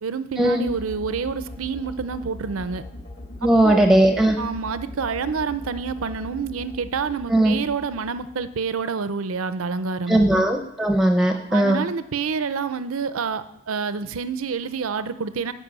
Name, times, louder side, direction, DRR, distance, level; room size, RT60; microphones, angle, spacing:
voice 1, 0.0-2.8 3.4-3.8 4.4-10.3 11.5-15.5, right 5 dB, 80° right, 13 dB, 0.6 m, -28 dB
sound 1, 0.6-8.8, left 1 dB, 55° left, 2.3 m, -40 dB
voice 2, 3.4-4.4 7.3-7.5 10.1-11.8, right 1 dB, ahead, 4 dB, 0.6 m, -18 dB
10.0 x 5.5 x 8.1 m, 0.83 s
head